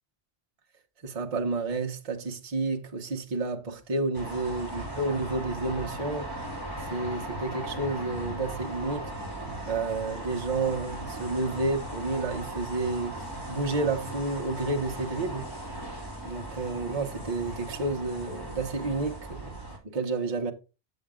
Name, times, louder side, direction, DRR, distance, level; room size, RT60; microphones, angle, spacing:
voice 1, 1.0-6.3 6.8-9.1 9.7-15.5 16.2-20.5, right 3 dB, 35° right, 1.1 m, -30 dB
sound 1, 4.1-19.8, right 1 dB, 20° left, 3.1 m, -38 dB
7.8 x 7.2 x 3.6 m
omnidirectional pair, 1.1 m